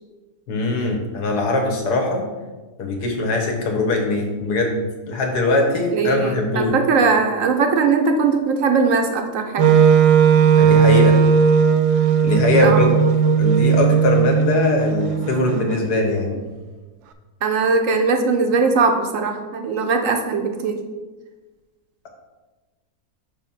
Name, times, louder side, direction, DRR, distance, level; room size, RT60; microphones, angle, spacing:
voice 1, 0.5-2.2 2.8-6.7 10.6-11.2 12.2-12.9 13.4-16.4, left 2 dB, 85° left, 2 dB, 1.7 m, -21 dB
voice 2, 5.9-9.8 12.6-12.9 17.4-20.8, right 4 dB, 65° right, 5 dB, 0.9 m, -20 dB
Wind instrument woodwind instrument, 9.6-15.6, right 6 dB, 85° right, 1.1 m, -16 dB
5.9 x 4.1 x 5.6 m, 1.2 s
omnidirectional pair, 1.7 m